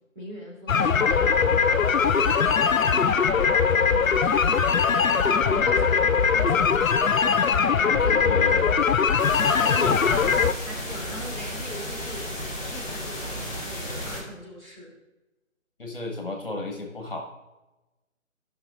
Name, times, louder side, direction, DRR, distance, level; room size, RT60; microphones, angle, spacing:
voice 1, 0.1-5.0 5.3-8.6 9.5-12.3 12.6-14.9, equal, 35° right, -5 dB, 2.7 m, -40 dB
sound 1, 0.7-10.5, left 6 dB, 75° left, 0.6 m, -21 dB
voice 2, 7.9-8.8 9.8-10.0 15.8-17.2, left 2 dB, 40° left, 1 dB, 1.3 m, -34 dB
sound 2, 9.2-14.2, equal, 5° right, 3.4 m, -34 dB
16.5 x 5.9 x 2.5 m, 1.0 s
figure-of-eight pair, 175°, 40 cm